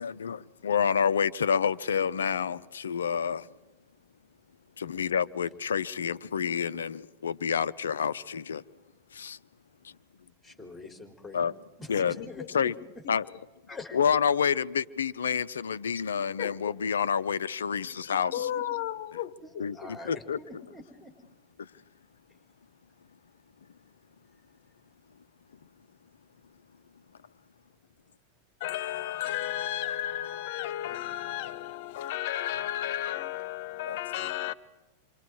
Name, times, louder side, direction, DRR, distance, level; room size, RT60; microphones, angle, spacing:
voice 1, 0.0-3.5 4.8-8.6 9.1-9.4 9.8-9.9 11.3-11.5 11.9-12.2 12.5-12.7 13.1-13.2 13.9-18.5 19.6-20.4 21.6-21.7 33.8-34.0, left 7 dB, 70° left, 0.7 m, -28 dB
voice 2, 10.4-11.4 11.8-12.7 13.7-13.9 18.3-18.6 19.4-21.2, left 2 dB, ahead, 3.8 m, -45 dB
voice 3, 11.9-12.5 13.0-13.1 16.4-16.8 18.3-20.2 28.6-34.5, left 12 dB, 50° left, 1.1 m, -34 dB
28.5 x 25.0 x 4.8 m
figure-of-eight pair, 90°, 0 cm